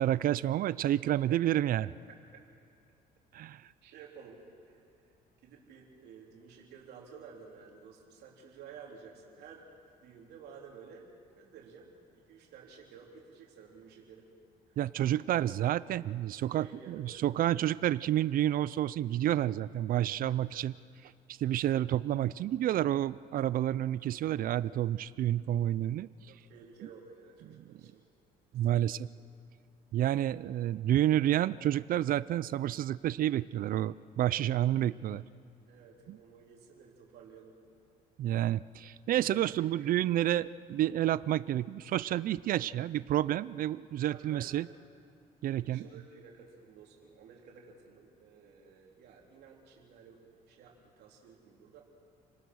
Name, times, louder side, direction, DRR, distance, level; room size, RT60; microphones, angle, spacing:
voice 1, 0.0-1.9 3.3-3.6 14.8-20.7 21.3-26.1 28.5-29.1 29.9-35.2 36.1-36.2 38.2-44.7 45.4-45.9, right 12 dB, 55° right, 18 dB, 0.5 m, -29 dB
voice 2, 1.3-1.6 3.8-5.1 5.4-11.1 11.4-14.3 14.7-14.8 16.5-17.2 20.3-20.6 26.3-28.0 28.8-29.1 35.7-37.5 39.6-39.9 44.0-44.5 45.4-51.8, right 6 dB, 75° right, -2 dB, 3.8 m, -53 dB
30.0 x 19.0 x 6.3 m, 2.4 s
cardioid pair, 110°, 17 cm